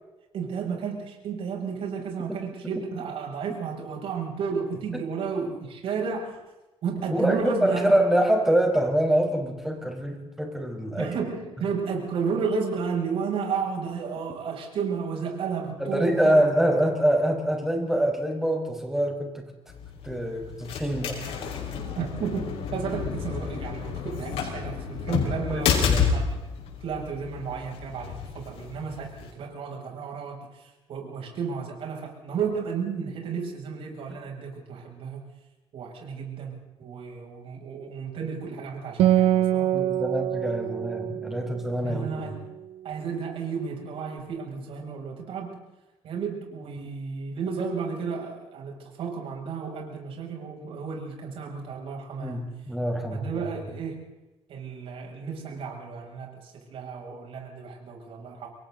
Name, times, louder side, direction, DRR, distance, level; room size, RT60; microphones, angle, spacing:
voice 1, 0.3-6.4 6.8-8.0 11.0-16.4 21.9-25.8 26.1-26.3 26.8-30.6 30.9-35.3 35.7-39.7 41.8-42.5 42.8-45.6 46.0-52.5 53.1-54.0 54.5-58.5, right 5 dB, 70° right, 0 dB, 7.5 m, -32 dB
voice 2, 7.1-11.1 15.8-19.5 20.0-21.5 25.5-26.1 39.7-42.2 52.2-53.4, right 1 dB, 5° right, 2 dB, 5.0 m, -25 dB
sound 1, 19.7-29.3, left 6 dB, 75° left, 5.4 m, -30 dB
Acoustic guitar, 39.0-42.7, right 12 dB, 90° right, 1.2 m, -25 dB
28.5 x 23.0 x 4.1 m, 1.1 s
cardioid pair, 125°, 10 cm